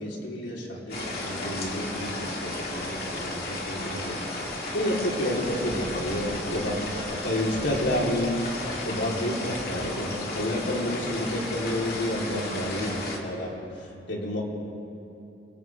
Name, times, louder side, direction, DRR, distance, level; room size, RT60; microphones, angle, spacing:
voice 1, 0.0-4.2 4.7-13.5 14.1-14.4, left 1 dB, 85° left, -3 dB, 4.2 m, -30 dB
sound 1, 0.9-13.2, left 2 dB, 50° left, 2.9 m, -33 dB
29.0 x 24.5 x 3.7 m, 2.9 s
head